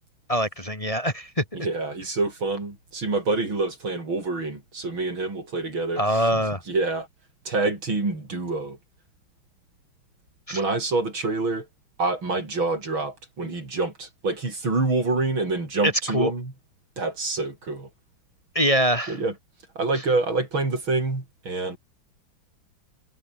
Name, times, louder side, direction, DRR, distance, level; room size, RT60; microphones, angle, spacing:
voice 1, 0.3-1.4 6.0-6.6 10.5-10.6 16.1-16.3 18.5-19.2, equal, 15° left, 2.7 m, -23 dB
voice 2, 1.5-6.3 6.7-7.1 7.5-8.8 10.5-11.7 12.0-16.5 17.0-17.9 19.1-19.3 19.8-21.8, right 3 dB, 80° right, 6.8 m, -27 dB
omnidirectional pair, 2.2 m